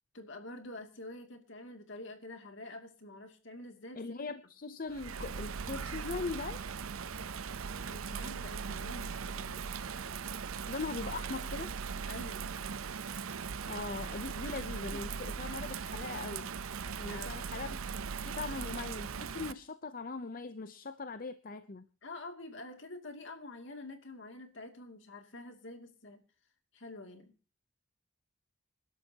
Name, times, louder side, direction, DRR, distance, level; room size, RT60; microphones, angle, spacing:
voice 1, 0.1-4.2 7.9-9.7 12.1-12.5 14.4-14.5 14.9-15.0 17.1-17.5 22.0-26.2 26.7-27.3, left 2 dB, 60° left, 5 dB, 2.6 m, -47 dB
voice 2, 3.9-6.6 10.7-11.7 13.7-16.5 17.0-17.8 18.2-21.8, left 3 dB, 45° left, 11 dB, 0.7 m, -40 dB
Bird vocalization bird call bird song / Rain, 4.9-19.5, right 6 dB, 90° right, 0.7 m, -39 dB
27.0 x 12.0 x 2.9 m, 0.34 s
head